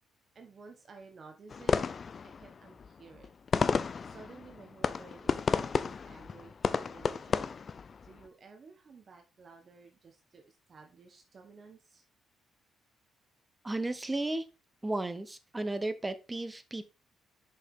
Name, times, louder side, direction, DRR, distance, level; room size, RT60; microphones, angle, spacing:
voice 1, 0.3-1.7 2.2-3.3 4.0-7.4 8.0-12.0, right 4 dB, 45° right, 5 dB, 1.2 m, -54 dB
sound 1, 1.5-8.3, left 5 dB, 45° left, 0.5 m, -32 dB
voice 2, 13.6-14.4 14.8-16.8, right 2 dB, 15° right, 11 dB, 0.9 m, -34 dB
6.4 x 5.4 x 3.6 m, 0.28 s
cardioid pair, 90°, 0 cm